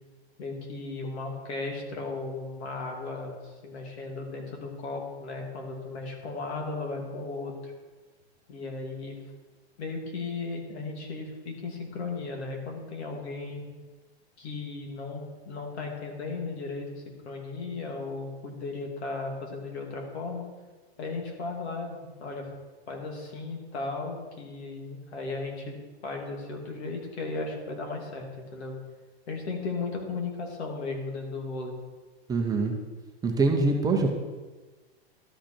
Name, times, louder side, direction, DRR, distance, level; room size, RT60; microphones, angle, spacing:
voice 1, 0.4-7.7 8.5-9.2 9.8-13.7 14.4-20.4 21.0-22.5 22.9-25.7 26.0-28.8 29.3-31.7, left 3 dB, 80° left, 1 dB, 2.4 m, -36 dB
voice 2, 32.3-32.7 33.2-34.1, right 3 dB, 10° right, 2 dB, 0.7 m, -24 dB
12.5 x 5.0 x 4.4 m, 1.3 s
hypercardioid pair, 140°, 32 cm